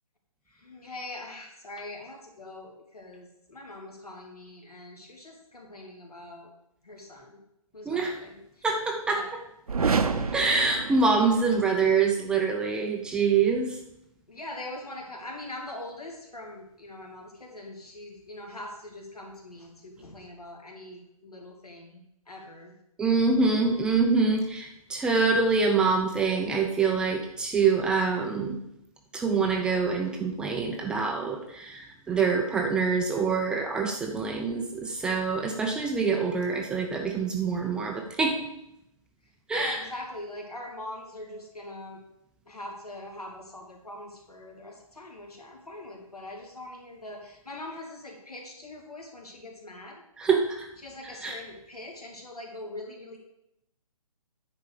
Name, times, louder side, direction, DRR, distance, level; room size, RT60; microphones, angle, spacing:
voice 1, 0.5-6.5 6.8-7.4 7.7-8.7 9.1-9.3 10.0-10.8 14.3-22.7 39.5-42.0 42.5-50.0 50.8-53.2, left 1 dB, 90° left, 1 dB, 2.9 m, -42 dB
voice 2, 7.9-8.2 8.6-9.2 10.3-13.7 23.0-28.6 29.1-38.5 39.5-39.8 50.2-50.7 51.2-51.4, right 4 dB, 5° right, 2 dB, 0.4 m, -25 dB
sound 1, 9.7-11.7, right 5 dB, 75° right, 0.9 m, -28 dB
9.5 x 4.6 x 6.6 m, 0.82 s
figure-of-eight pair, 140°, 19 cm